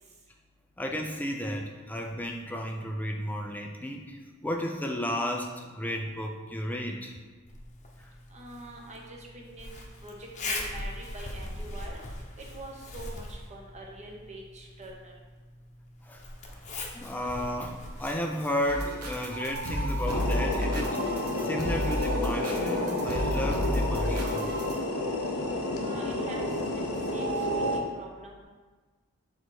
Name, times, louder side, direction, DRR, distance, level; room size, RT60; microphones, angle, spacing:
voice 1, 0.8-7.2 8.0-8.1 16.0-16.6 16.9-21.0 21.4-24.5, equal, 10° left, 2 dB, 0.4 m, -33 dB
Zipper (clothing), 7.5-21.0, left 2 dB, 35° left, 0.8 m, -42 dB
voice 2, 8.3-12.0 12.4-15.1 25.8-26.5 27.1-27.3 27.7-28.4, right 1 dB, 30° right, -1 dB, 1.0 m, -44 dB
sound 1, 18.6-24.8, equal, 90° right, 1.0 m, -31 dB
sound 2, 20.1-27.8, left 1 dB, 85° left, 0.9 m, -30 dB
6.2 x 4.0 x 4.7 m, 1.3 s
head